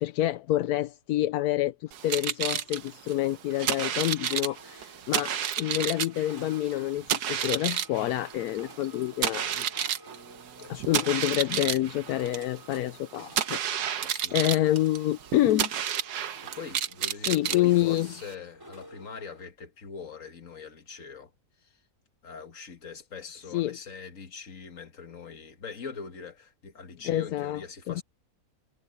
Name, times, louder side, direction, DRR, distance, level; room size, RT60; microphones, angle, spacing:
voice 1, 0.0-5.3 5.6-9.7 10.7-15.7 17.3-18.1 23.5-23.8 27.0-27.6 27.9-28.0, left 14 dB, 75° left, 1.1 m, -27 dB
sound 1, 1.9-18.3, right 9 dB, 80° right, 1.5 m, -31 dB
sound 2, 3.5-19.5, equal, 15° right, 4.0 m, -52 dB
voice 2, 10.6-11.1 14.0-14.7 16.4-21.3 21.6-21.8 22.2-28.0, left 5 dB, 55° left, 2.0 m, -43 dB
omnidirectional pair, 1.7 m